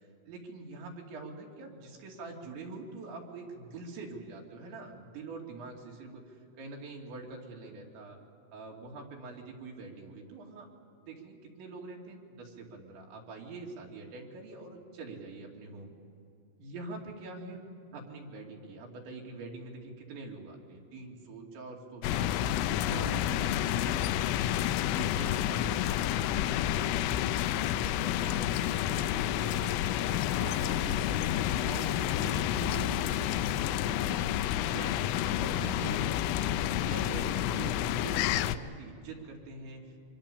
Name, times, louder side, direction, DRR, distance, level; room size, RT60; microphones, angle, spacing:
voice 1, 0.3-8.2 8.5-10.7 11.1-15.9 16.6-17.6 17.9-24.0 24.9-27.3 27.8-29.8 30.1-34.2 34.7-39.8, right 3 dB, 65° right, -1 dB, 4.6 m, -44 dB
sound 1, 22.0-38.6, left 12 dB, 80° left, 3.0 m, -30 dB
24.5 x 22.0 x 6.9 m, 2.7 s
omnidirectional pair, 6.0 m